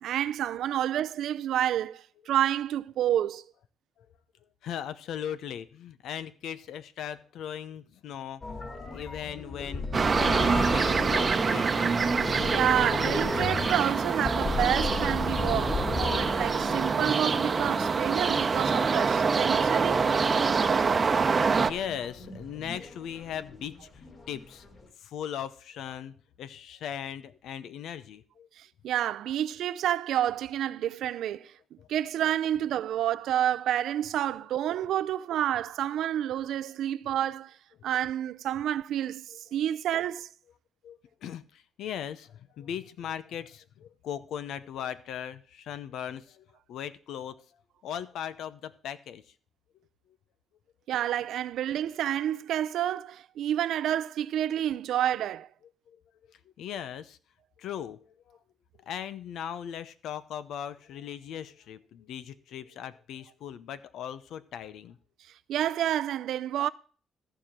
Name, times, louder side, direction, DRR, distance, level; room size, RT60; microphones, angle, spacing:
voice 1, 0.0-3.4 12.5-20.1 28.6-37.6 37.8-40.3 50.9-55.5 65.5-66.7, right 11 dB, 75° right, 0.5 m, -29 dB
voice 2, 4.6-8.6 8.9-11.9 21.6-24.7 25.0-28.5 31.8-31.9 39.3-39.4 40.8-47.3 47.8-49.2 55.9-56.0 56.3-57.2 57.6-58.4 58.8-65.0, left 9 dB, 80° left, 0.8 m, -39 dB
sound 1, 8.4-24.9, left 3 dB, 45° left, 3.0 m, -36 dB
sound 2, 9.9-21.7, right 5 dB, 35° right, 0.8 m, -26 dB
14.0 x 5.0 x 7.5 m
cardioid pair, 90°, 0 cm